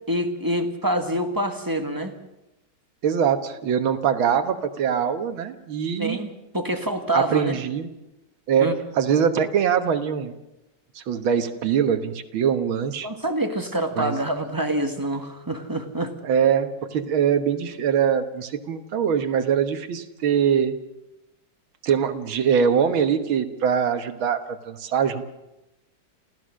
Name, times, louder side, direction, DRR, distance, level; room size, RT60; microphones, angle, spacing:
voice 1, 0.1-2.1 6.0-7.5 8.6-8.8 13.0-16.1, right 1 dB, 10° right, 5 dB, 1.2 m, -26 dB
voice 2, 3.0-6.2 7.1-7.9 8.5-8.7 9.0-10.3 11.0-13.1 14.0-14.1 16.2-20.8 21.8-25.2, right 8 dB, 80° right, 9 dB, 2.1 m, -23 dB
28.0 x 15.5 x 6.3 m, 0.96 s
omnidirectional pair, 2.2 m